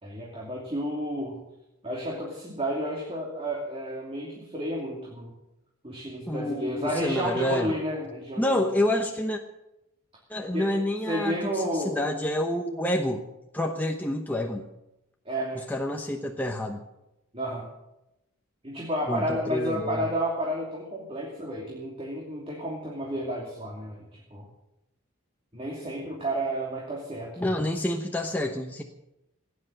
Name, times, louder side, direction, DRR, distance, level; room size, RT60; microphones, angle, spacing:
voice 1, 0.0-1.4 1.8-5.3 5.8-8.7 10.5-10.7 11.1-12.0 15.2-15.7 17.3-17.7 18.6-24.5 25.5-27.5, equal, 25° right, -2 dB, 2.8 m, -31 dB
voice 2, 6.3-7.7 8.4-9.4 10.3-13.2 13.5-14.7 15.6-16.8 19.1-20.1 27.4-28.8, left 1 dB, 10° left, 2 dB, 0.9 m, -28 dB
17.5 x 10.5 x 7.8 m, 0.90 s
head